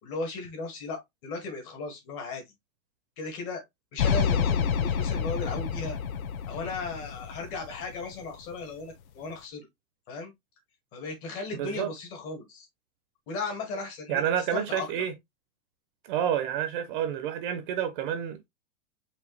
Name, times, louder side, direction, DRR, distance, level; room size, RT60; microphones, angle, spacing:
voice 1, 0.0-2.4 3.2-3.6 3.9-6.0 6.5-9.7 10.1-10.3 10.9-12.7 13.3-14.9, left 3 dB, 30° left, 2.1 m, -36 dB
sound 1, 4.0-8.3, left 7 dB, 80° left, 0.9 m, -28 dB
voice 2, 11.5-11.9 14.1-15.1 16.1-18.5, right 9 dB, 35° right, 0.8 m, -29 dB
5.2 x 3.1 x 3.2 m
supercardioid pair, 165°, 42 cm